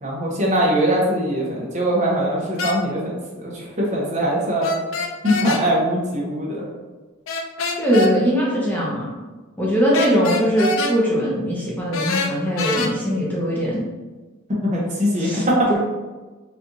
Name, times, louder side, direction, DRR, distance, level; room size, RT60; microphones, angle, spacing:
voice 1, 0.0-3.1 3.4-4.7 5.2-6.6 14.6-15.8, equal, 35° right, -4 dB, 0.9 m, -21 dB
sound 1, 2.6-2.8 4.6-5.6 7.3-8.1 9.9-11.0 11.9-12.9, left 2 dB, 75° left, 0.4 m, -24 dB
voice 2, 7.8-9.1 9.6-13.9 15.2-15.8, equal, 10° left, -6 dB, 0.7 m, -21 dB
4.2 x 2.4 x 2.7 m, 1.3 s
head